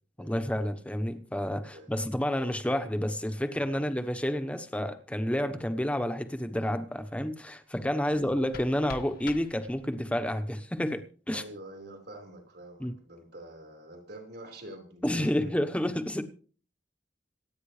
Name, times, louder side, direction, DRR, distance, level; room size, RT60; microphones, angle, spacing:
voice 1, 0.2-11.4 12.8-12.9 15.0-16.2, equal, 5° left, 1.1 m, -30 dB
voice 2, 1.6-1.9 8.0-8.3 11.3-15.7, right 1 dB, 65° right, 4.6 m, -46 dB
sound 1, 8.1-10.1, left 3 dB, 55° left, 1.1 m, -45 dB
27.0 x 9.2 x 3.3 m
head